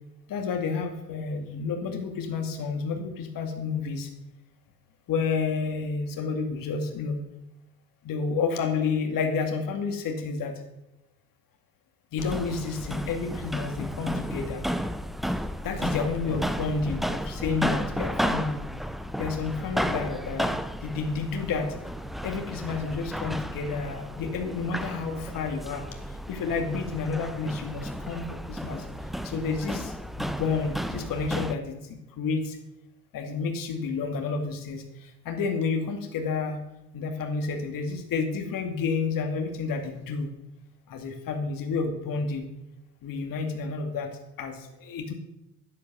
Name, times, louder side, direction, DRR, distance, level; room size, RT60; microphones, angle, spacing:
voice 1, 0.3-4.1 5.1-7.2 8.0-10.5 12.1-14.7 15.6-18.6 19.2-21.7 22.2-28.9 29.2-32.6 33.1-36.6 36.9-40.3 40.9-42.4 43.0-44.1 44.4-45.1, left 4 dB, 45° left, 4 dB, 2.2 m, -30 dB
sound 1, 12.2-31.6, equal, ahead, 0.5 m, -33 dB
10.5 x 8.7 x 6.2 m, 0.91 s
hypercardioid pair, 75°, 47 cm